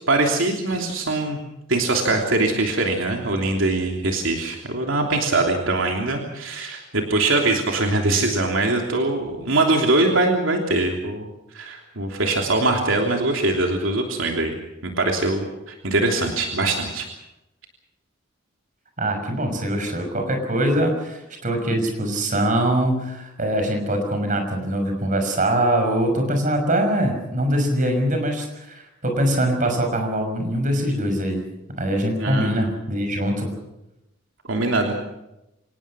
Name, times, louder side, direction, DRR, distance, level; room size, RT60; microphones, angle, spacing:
voice 1, 0.1-1.4 1.7-14.5 14.8-17.1 32.2-32.6 34.5-35.0, right 2 dB, 80° right, 1 dB, 3.2 m, -22 dB
voice 2, 19.0-31.4 31.8-33.5, right 1 dB, 40° right, 5 dB, 5.9 m, -23 dB
26.0 x 19.0 x 6.3 m, 0.90 s
head